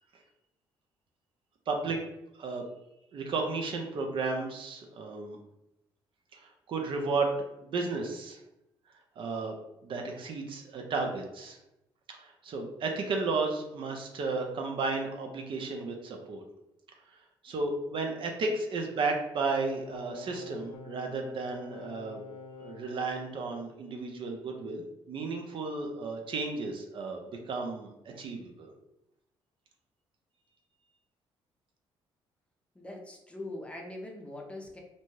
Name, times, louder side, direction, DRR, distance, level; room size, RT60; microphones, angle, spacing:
voice 1, 1.7-2.0 2.3-2.6 3.1-5.4 6.3-8.4 9.2-9.6 9.8-11.6 12.2-16.4 17.4-22.2 22.6-28.7, right 3 dB, 60° right, 2 dB, 0.5 m, -33 dB
sound 1, 19.4-23.3, left 4 dB, 75° left, 0.4 m, -47 dB
voice 2, 32.7-34.8, left 1 dB, 10° left, 0 dB, 0.6 m, -42 dB
2.6 x 2.1 x 3.1 m, 0.89 s
cardioid pair, 85°, 10 cm